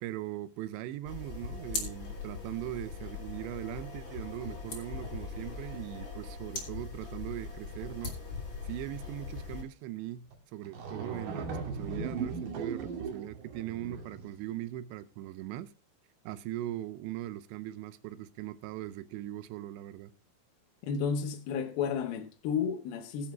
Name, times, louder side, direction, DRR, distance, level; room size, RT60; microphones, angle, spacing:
voice 1, 0.0-8.2 8.6-10.3 10.5-15.7 16.2-20.1, right 13 dB, 80° right, 2.6 m, -40 dB
sound 1, 1.0-9.6, left 4 dB, 30° left, 2.5 m, -40 dB
sound 2, 10.3-10.4 10.6-14.4, right 5 dB, 65° right, 4.0 m, -38 dB
voice 2, 20.8-23.3, left 6 dB, 75° left, 2.4 m, -32 dB
21.0 x 7.7 x 2.2 m
omnidirectional pair, 5.6 m